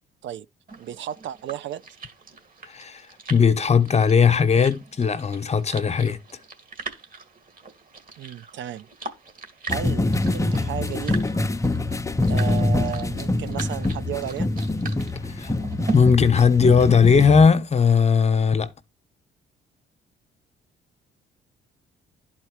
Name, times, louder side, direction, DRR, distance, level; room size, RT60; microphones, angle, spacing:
sound 1, 0.7-15.9, right 4 dB, 45° right, 2.0 m, -39 dB
voice 1, 0.8-1.8 8.2-8.9 9.7-11.2 12.3-14.5, right 11 dB, 70° right, 0.5 m, -33 dB
voice 2, 2.6-3.0 3.3-6.2 15.3-15.5 15.9-18.7, left 6 dB, 35° left, 1.0 m, -18 dB
sound 2, 9.7-17.5, left 2 dB, 15° left, 0.7 m, -25 dB
11.0 x 4.4 x 4.7 m
cardioid pair, 90°, 20 cm